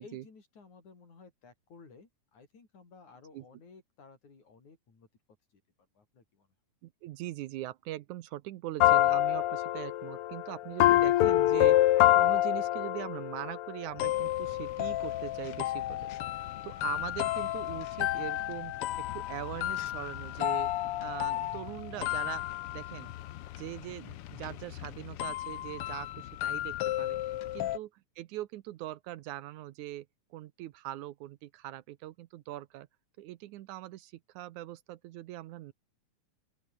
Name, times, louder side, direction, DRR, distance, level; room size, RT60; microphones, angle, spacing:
voice 1, 0.0-5.1 5.5-5.6 5.9-6.5 27.6-27.8, left 4 dB, 65° left, 6.7 m, -56 dB
voice 2, 6.8-11.8 12.1-16.1 16.6-22.5 22.7-23.1 23.6-27.2 27.5-30.1 30.3-32.9 33.2-35.7, right 15 dB, 75° right, 2.1 m, -41 dB
sound 1, 8.8-27.8, left 14 dB, 90° left, 1.2 m, -29 dB
open air
omnidirectional pair, 3.6 m